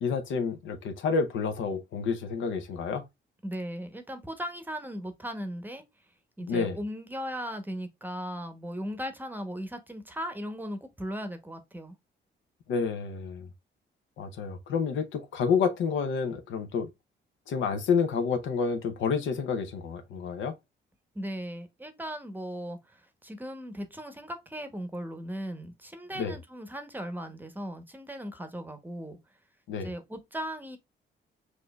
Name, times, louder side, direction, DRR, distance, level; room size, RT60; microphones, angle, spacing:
voice 1, 0.0-3.0 6.5-6.8 12.7-13.5 14.2-16.9 17.5-20.5 26.2-26.4 29.7-29.9, left 5 dB, 75° left, 0.7 m, -29 dB
voice 2, 3.4-5.8 6.4-12.0 21.1-29.2 29.8-30.8, equal, 10° right, 0.8 m, -37 dB
6.1 x 2.7 x 2.3 m
cardioid pair, 90°, 20 cm